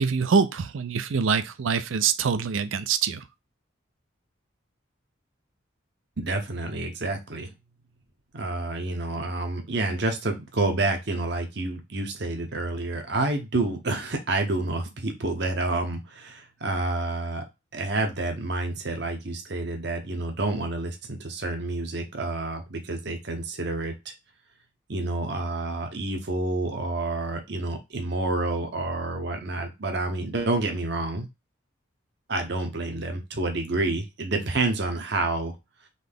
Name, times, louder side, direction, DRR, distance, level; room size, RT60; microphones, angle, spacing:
voice 1, 0.0-3.2, right 6 dB, 80° right, 0.5 m, -24 dB
voice 2, 6.2-7.5 8.3-17.4 17.7-24.1 24.9-31.3 32.3-35.6, right 2 dB, 55° right, 0.8 m, -29 dB
4.0 x 3.3 x 3.4 m
head